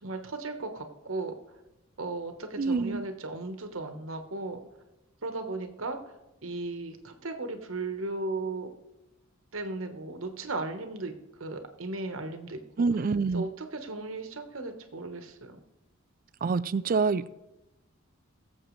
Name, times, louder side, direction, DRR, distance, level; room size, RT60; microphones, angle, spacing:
voice 1, 0.0-1.3 2.0-4.6 5.2-6.0 6.4-8.7 9.5-11.1 11.4-12.6 13.3-15.6, right 2 dB, 75° right, 6 dB, 1.2 m, -36 dB
voice 2, 2.6-3.0 12.8-13.4 16.4-17.3, right 4 dB, 40° right, 15 dB, 0.4 m, -26 dB
21.0 x 7.3 x 3.2 m, 1.0 s
head